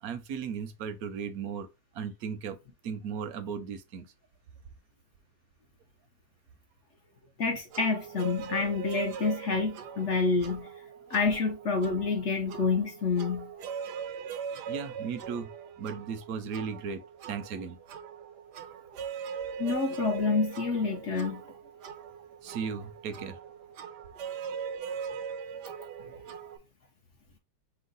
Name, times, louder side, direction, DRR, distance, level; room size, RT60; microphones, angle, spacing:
voice 1, 0.0-1.7 1.9-2.6 2.8-4.1 14.7-15.5 15.8-17.0 17.3-17.8 22.4-23.4, right 6 dB, 70° right, 1.0 m, -36 dB
voice 2, 7.4-10.7 11.1-13.5 19.6-21.4, left 4 dB, 60° left, 0.8 m, -28 dB
sound 1, 7.7-26.6, right 7 dB, 85° right, 1.3 m, -40 dB
5.5 x 2.1 x 3.9 m
omnidirectional pair, 1.8 m